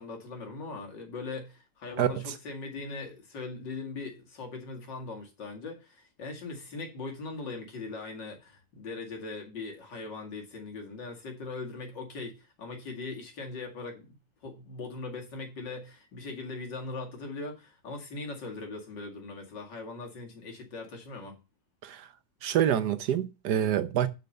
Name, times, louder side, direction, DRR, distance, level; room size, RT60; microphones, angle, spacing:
voice 1, 0.0-14.2 14.4-21.4, left 3 dB, 85° left, 2.8 m, -40 dB
voice 2, 2.0-2.4 21.8-22.1 22.4-24.1, right 10 dB, 70° right, 1.4 m, -27 dB
6.8 x 6.0 x 6.6 m
omnidirectional pair, 1.9 m